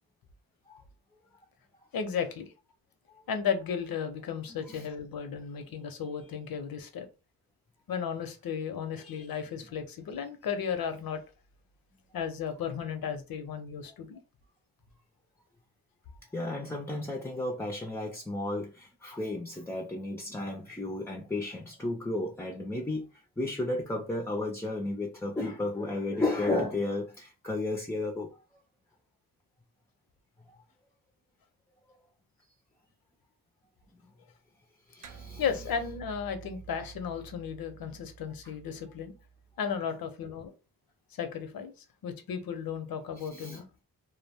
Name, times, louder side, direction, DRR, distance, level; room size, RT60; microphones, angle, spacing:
voice 1, 1.9-2.5 3.3-7.1 7.9-11.2 12.1-14.2 35.4-39.1 39.6-40.5 41.2-43.6, left 7 dB, 75° left, 0.7 m, -34 dB
voice 2, 16.3-23.1 23.4-28.4 34.9-35.4 43.2-43.6, left 2 dB, 10° left, 0.4 m, -33 dB
sound 1, 35.0-39.8, right 6 dB, 60° right, 0.5 m, -49 dB
2.3 x 2.1 x 3.4 m
cardioid pair, 85°, 36 cm